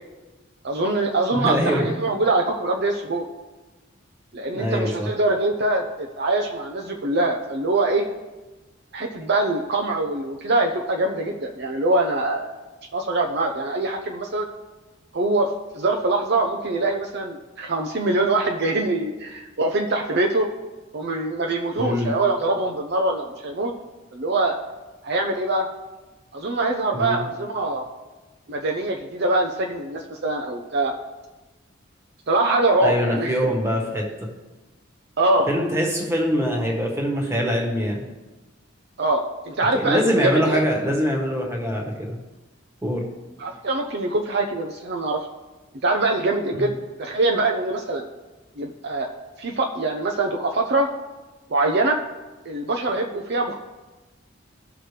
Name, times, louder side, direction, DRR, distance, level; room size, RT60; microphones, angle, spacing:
voice 1, 0.6-3.3 4.3-8.1 8.9-12.5 12.9-14.5 15.1-20.5 20.9-23.7 24.1-24.6 25.0-25.7 26.3-27.9 28.5-30.9 32.3-33.5 35.2-35.5 39.0-40.6 43.4-45.3 45.8-46.7 47.0-48.1 48.6-49.1 49.4-50.9 51.5-52.0 52.5-53.5, right 2 dB, 55° right, 2 dB, 0.7 m, -23 dB
voice 2, 1.3-1.9 4.5-5.1 21.8-22.1 26.9-27.2 32.8-34.3 35.5-38.0 39.7-42.2 42.8-43.0 46.5-46.7, equal, 15° right, 0 dB, 1.4 m, -23 dB
16.5 x 5.9 x 3.3 m, 1.1 s
head